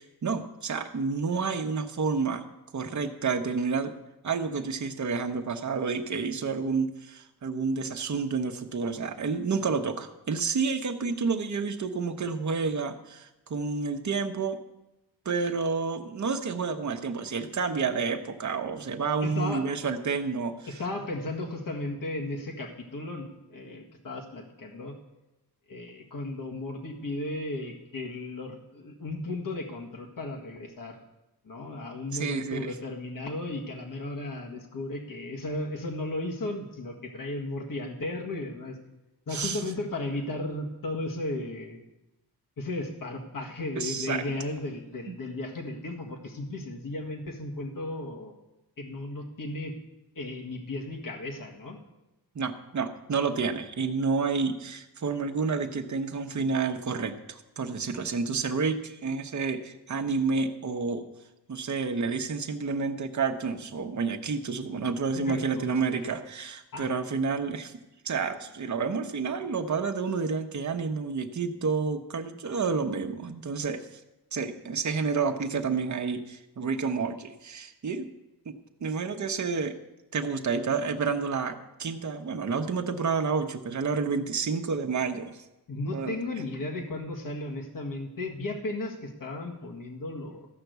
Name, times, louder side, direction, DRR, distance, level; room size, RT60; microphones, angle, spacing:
voice 1, 0.0-2.4 2.7-3.9 4.2-14.6 15.2-20.5 32.1-32.7 39.3-39.6 43.8-44.2 45.1-45.2 52.3-61.0 61.5-67.7 68.0-73.8 74.3-78.1 78.5-78.6 78.8-79.8 80.1-85.4 85.9-86.2, right 5 dB, 45° right, 5 dB, 1.0 m, -29 dB
voice 2, 19.2-19.6 20.7-25.0 25.7-31.0 31.4-38.8 39.3-41.8 42.6-48.3 48.8-49.8 50.2-51.8 65.2-66.1 66.7-66.9 85.7-90.5, left 2 dB, 55° left, 1 dB, 1.8 m, -35 dB
14.0 x 5.9 x 8.0 m, 0.96 s
wide cardioid pair, 125°, 39 cm